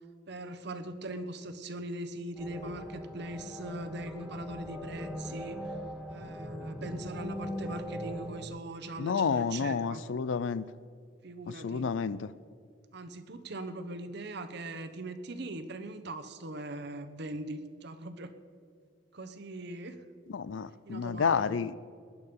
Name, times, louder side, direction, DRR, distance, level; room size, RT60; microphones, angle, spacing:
voice 1, 0.3-5.6 6.1-10.0 11.2-11.9 12.9-18.3 19.1-20.0 20.9-21.6, right 1 dB, 60° right, 8 dB, 1.0 m, -40 dB
sound 1, 2.4-8.5, equal, ahead, 1.8 m, -40 dB
voice 2, 9.0-10.6 11.6-12.2 20.3-21.8, left 6 dB, 80° left, 17 dB, 0.4 m, -30 dB
19.0 x 11.0 x 5.3 m, 2.1 s
head